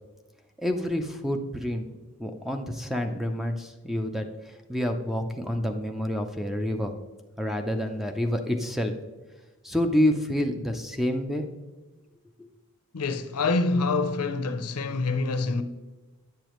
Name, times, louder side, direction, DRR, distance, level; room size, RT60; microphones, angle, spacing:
voice 1, 0.6-1.9 2.2-6.9 7.4-8.9 9.6-11.5 12.4-12.5, left 1 dB, ahead, 0.5 m, -28 dB
voice 2, 12.9-15.6, left 3 dB, 90° left, 0.7 m, -26 dB
10.0 x 6.8 x 3.1 m
head